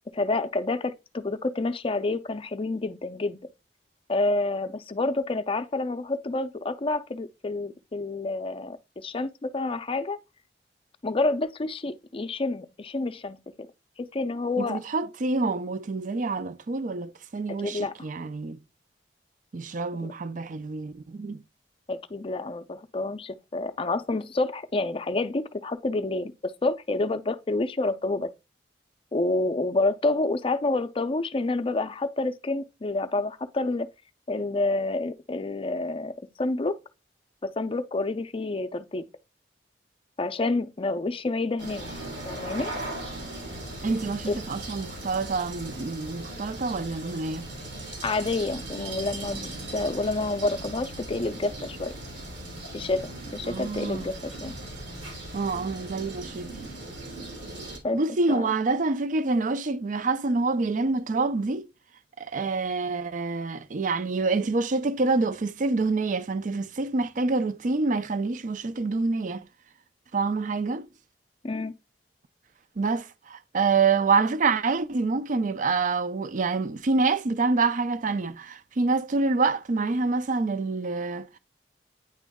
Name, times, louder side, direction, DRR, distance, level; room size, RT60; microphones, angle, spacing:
voice 1, 0.1-3.4 4.1-10.2 11.0-13.7 14.1-14.8 17.6-17.9 20.0-20.1 21.9-28.3 29.1-33.9 34.3-36.1 36.4-36.8 37.4-39.0 40.2-42.0 42.3-42.7 44.3-44.4 48.0-49.4 49.7-51.9 52.7-54.5 57.8-58.0 58.3-58.5 71.4-71.7, left 2 dB, 30° left, 0.5 m, -28 dB
voice 2, 14.6-18.6 19.5-21.4 43.8-47.5 53.4-54.1 55.3-56.5 57.9-61.7 62.2-69.5 70.1-70.9 72.8-81.4, right 3 dB, 50° right, 0.5 m, -27 dB
sound 1, 41.6-57.8, right 1 dB, 90° right, 2.8 m, -38 dB
9.2 x 3.1 x 3.5 m
head